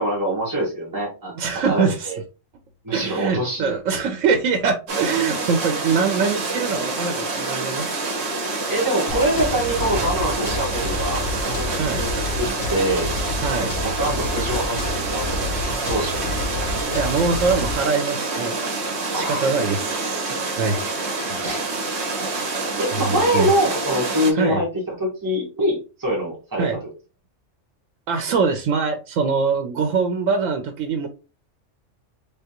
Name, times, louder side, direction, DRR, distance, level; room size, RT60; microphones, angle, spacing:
voice 1, 0.0-2.2 2.8-4.0 8.7-13.1 13.6-14.8 15.1-15.5 15.9-16.2 19.1-19.5 21.4-21.7 22.8-26.7, right 1 dB, 15° right, -4 dB, 1.5 m, -24 dB
voice 2, 1.3-2.1 2.9-7.9 8.1-8.3 9.0-9.2 9.9-10.0 11.8-12.0 13.4-13.7 16.8-18.6 19.1-20.8 21.3-21.7 22.6-23.5 24.3-24.6 26.6-26.8 28.1-31.1, right 5 dB, 85° right, 6 dB, 1.0 m, -23 dB
sound 1, 4.9-24.3, right 3 dB, 60° right, 1.2 m, -27 dB
sound 2, 9.1-17.7, left 2 dB, 70° left, 1.2 m, -30 dB
3.4 x 3.4 x 2.9 m, 0.32 s
omnidirectional pair, 1.3 m